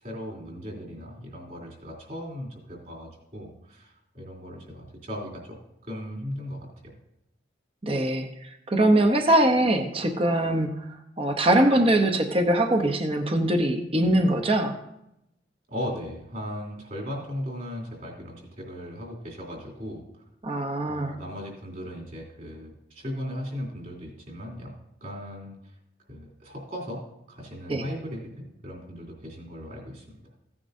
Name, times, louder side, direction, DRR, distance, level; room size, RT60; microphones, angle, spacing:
voice 1, 0.0-5.6 5.8-6.7 15.7-20.0 20.9-24.7 25.0-25.5 26.1-27.0 27.3-30.2, equal, 45° right, -2 dB, 3.1 m, -37 dB
voice 2, 7.8-8.3 8.7-10.7 11.2-14.8 20.4-21.1 27.7-27.8, right 1 dB, 30° right, 6 dB, 0.8 m, -22 dB
15.5 x 9.6 x 2.7 m, 0.83 s
head